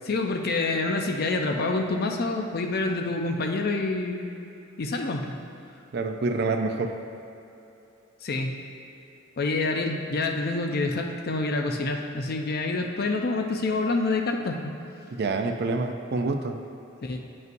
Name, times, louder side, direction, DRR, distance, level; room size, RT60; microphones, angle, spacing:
voice 1, 0.1-4.3 4.8-5.3 8.2-8.5 9.4-14.7 17.0-17.2, left 3 dB, 50° left, 3 dB, 0.5 m, -27 dB
voice 2, 5.9-6.9 15.2-16.6, right 3 dB, 50° right, 5 dB, 0.4 m, -27 dB
9.1 x 5.4 x 2.6 m, 2.9 s
head